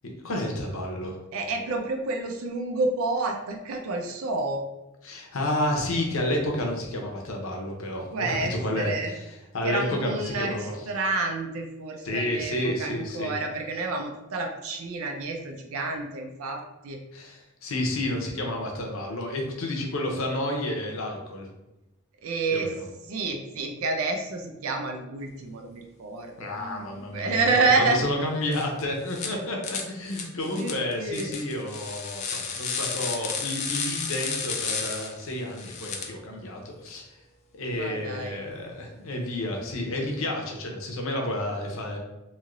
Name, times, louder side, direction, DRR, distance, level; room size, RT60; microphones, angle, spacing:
voice 1, 0.2-1.2 5.0-8.9 9.5-10.7 12.0-13.3 17.1-21.5 22.5-22.7 26.4-27.4 27.8-37.2 37.5-42.0, left 1 dB, 70° left, 1 dB, 0.7 m, -30 dB
voice 2, 1.3-4.6 8.1-9.2 9.6-17.0 22.2-22.7 23.1-28.0 30.5-31.3 37.7-38.4, right 3 dB, 80° right, 3 dB, 0.4 m, -29 dB
sound 1, 28.5-28.6 29.1-29.3 29.6-36.0, left 5 dB, 35° left, 0.4 m, -32 dB
3.0 x 2.7 x 2.5 m, 0.98 s
head